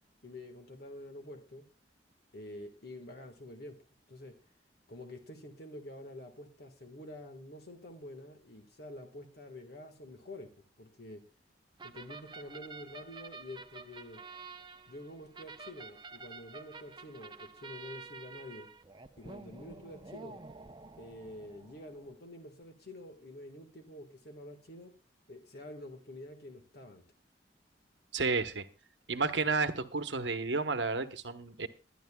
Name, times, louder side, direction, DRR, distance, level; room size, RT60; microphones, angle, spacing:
voice 1, 0.2-1.6 2.3-3.8 4.1-4.4 4.9-10.5 10.8-11.2 11.8-14.2 14.9-18.7 19.2-20.4 21.0-24.9 25.3-27.0, left 1 dB, 60° left, 4 dB, 1.6 m, -48 dB
sound 1, 11.8-22.1, right 4 dB, 25° right, 0.7 m, -49 dB
voice 2, 28.1-28.7 29.1-31.7, right 4 dB, 80° right, 9 dB, 1.1 m, -31 dB
22.5 x 10.5 x 2.3 m, 0.32 s
head